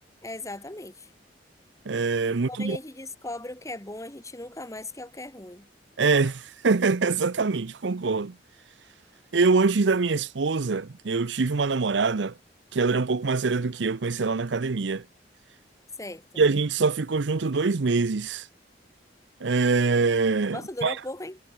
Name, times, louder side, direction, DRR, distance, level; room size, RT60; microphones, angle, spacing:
voice 1, 0.2-1.1 2.5-5.7 16.0-16.4 20.5-21.4, left 2 dB, 20° left, 3.0 m, -38 dB
voice 2, 1.9-2.8 6.0-8.4 9.3-12.3 12.7-15.0 16.4-18.5 19.4-20.9, right 4 dB, 75° right, 0.7 m, -24 dB
head